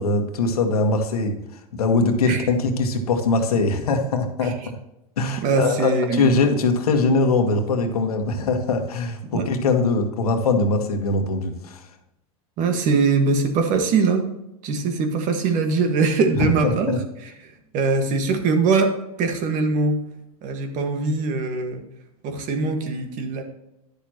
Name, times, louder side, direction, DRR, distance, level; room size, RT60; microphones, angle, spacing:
voice 1, 0.0-1.4 1.7-4.8 5.2-11.9 16.4-17.0, left 3 dB, 90° left, 5 dB, 1.6 m, -22 dB
voice 2, 5.4-6.4 9.3-9.5 12.6-14.3 14.6-16.9 17.2-18.9 19.2-20.1 20.4-21.8 22.2-23.4, right 4 dB, 45° right, 6 dB, 1.7 m, -22 dB
10.5 x 6.8 x 3.0 m, 0.87 s
hypercardioid pair, 120°, 19 cm